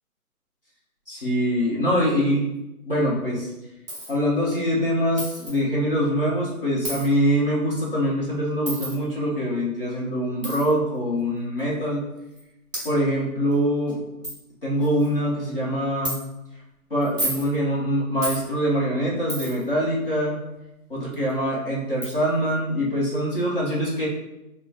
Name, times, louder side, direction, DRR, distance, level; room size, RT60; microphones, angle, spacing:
voice 1, 1.1-2.5 2.8-3.5 4.1-12.0 12.8-14.0 14.6-16.2 16.9-20.4 20.9-24.1, equal, 40° left, -6 dB, 1.0 m, -24 dB
Coin (dropping), 3.9-4.1 5.2-5.5 6.8-7.1 8.7-9.0 10.4-10.6 11.6-11.7 12.4-12.5 12.7-12.9 13.5-13.6 13.9-14.0 14.2-14.4 14.8-15.1 16.1-16.2 17.0-17.5 18.2-18.4 19.3-19.7 21.3-21.4 22.0-22.1, right 1 dB, 25° right, 1.3 m, -30 dB
4.5 x 2.3 x 2.5 m, 0.93 s
hypercardioid pair, 175°, 45 cm